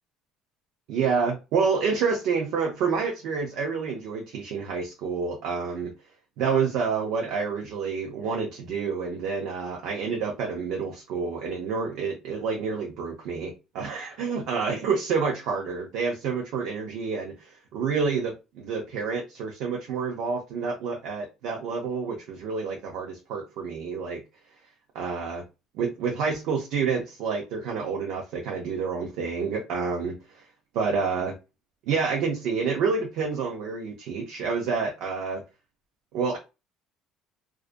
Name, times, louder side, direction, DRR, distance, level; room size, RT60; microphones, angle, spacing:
voice 1, 0.9-5.9 6.4-24.2 24.9-25.4 25.7-30.4 30.7-31.4 31.9-35.4 36.1-36.4, right 5 dB, 65° right, 0.4 m, -28 dB
2.4 x 2.1 x 2.4 m
cardioid pair, 175°, 0 cm